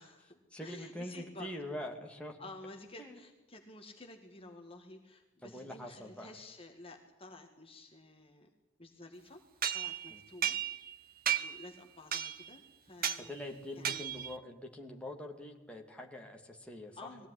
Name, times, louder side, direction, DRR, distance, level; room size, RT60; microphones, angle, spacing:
voice 1, 0.0-1.5 2.4-8.5 8.8-9.4 9.7-10.6 11.3-13.3 13.8-14.1 17.0-17.3, left 2 dB, 30° left, 3 dB, 2.0 m, -51 dB
voice 2, 0.5-2.4 3.0-3.2 5.4-6.3 10.1-10.2 13.2-17.3, left 1 dB, 5° left, 1 dB, 2.5 m, -44 dB
sound 1, 9.6-10.9 11.3-11.7 12.1-12.5 13.0-13.3 13.8-14.4, right 9 dB, 45° right, 1.2 m, -34 dB
21.5 x 16.5 x 10.0 m, 1.1 s
head